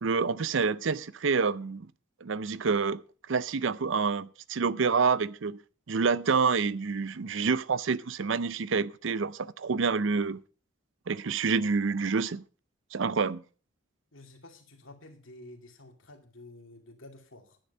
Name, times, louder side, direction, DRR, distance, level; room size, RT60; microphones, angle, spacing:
voice 1, 0.0-1.9 2.2-3.0 3.3-5.6 5.9-10.4 11.1-12.4 12.9-13.4, right 5 dB, 70° right, 0.5 m, -27 dB
voice 2, 14.1-17.6, left 2 dB, 75° left, 2.4 m, -50 dB
10.5 x 9.3 x 5.4 m
head